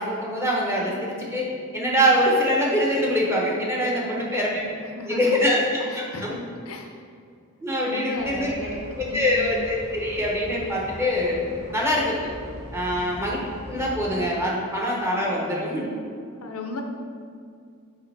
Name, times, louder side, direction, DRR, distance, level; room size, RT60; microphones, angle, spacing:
voice 1, 0.0-4.6 5.1-5.6 5.9-6.0 7.6-8.5 9.1-11.5 11.7-12.3 12.7-13.4 13.7-15.9, equal, 10° right, -4 dB, 0.9 m, -24 dB
voice 2, 4.0-4.5 4.8-5.5 5.8-7.0 7.8-8.8 9.1-9.6 12.9-13.1 16.3-16.8, left 2 dB, 80° left, 3 dB, 0.7 m, -35 dB
sound 1, 8.1-14.2, equal, 75° right, 1.4 m, -41 dB
6.5 x 4.9 x 3.4 m, 2.3 s
head